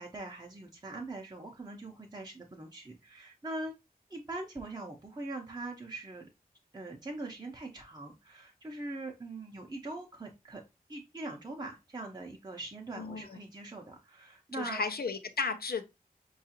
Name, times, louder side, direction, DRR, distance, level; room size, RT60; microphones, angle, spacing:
voice 1, 0.0-3.7 4.1-6.3 6.7-10.6 10.9-14.8, right 2 dB, 25° right, 0.6 m, -42 dB
voice 2, 13.0-13.4 14.6-15.8, left 4 dB, 80° left, 0.5 m, -34 dB
4.7 x 2.4 x 2.8 m
wide cardioid pair, 55°, 16 cm